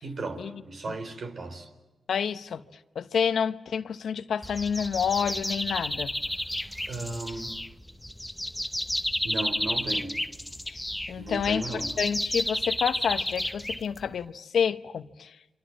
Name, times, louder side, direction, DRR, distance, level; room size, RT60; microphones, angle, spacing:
voice 1, 0.0-1.7 6.9-7.6 9.2-10.2 11.2-11.9, right 2 dB, 60° right, 4.2 m, -35 dB
voice 2, 2.1-2.6 2.9-6.1 10.7-10.8 11.1-15.4, left 7 dB, 75° left, 0.9 m, -29 dB
sound 1, 4.4-14.2, left 1 dB, 5° left, 1.1 m, -32 dB
29.5 x 25.5 x 7.5 m
supercardioid pair, 45°, 0 cm